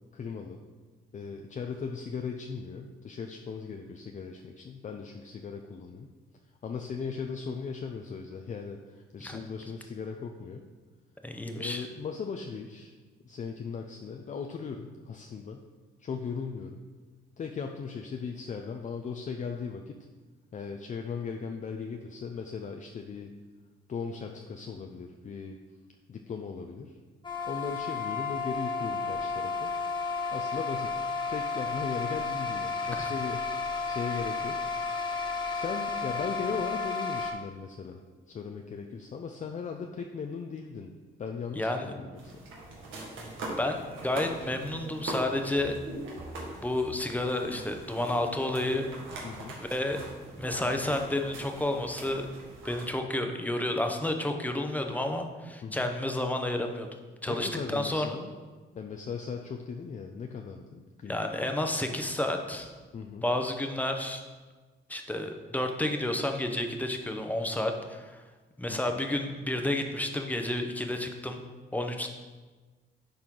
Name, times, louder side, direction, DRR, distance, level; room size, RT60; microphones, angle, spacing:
voice 1, 0.1-0.6 1.1-6.1 6.6-10.6 11.5-12.9 13.3-15.6 16.0-16.8 17.4-20.0 20.5-23.3 23.9-25.6 26.1-27.0 27.5-29.7 30.3-34.6 35.5-38.0 38.3-40.9 41.2-42.4 49.2-49.6 55.6-55.9 57.3-58.3 58.7-61.3 62.9-63.2 68.7-69.0, left 5 dB, 40° left, 3 dB, 0.6 m, -38 dB
voice 2, 11.2-11.9 33.0-33.1 41.5-41.9 43.5-45.7 46.6-48.9 49.1-49.2 49.6-50.0 50.4-52.3 52.6-56.9 57.2-58.2 61.1-62.7 63.2-64.2 64.9-68.2 68.6-71.4 71.7-72.1, left 1 dB, 10° left, 4 dB, 0.9 m, -31 dB
sound 1, 27.2-37.3, left 4 dB, 25° left, 1.5 m, -32 dB
sound 2, 42.2-52.9, right 2 dB, 80° right, 1.8 m, -42 dB
10.5 x 4.3 x 3.8 m, 1.3 s
cardioid pair, 90°, 20 cm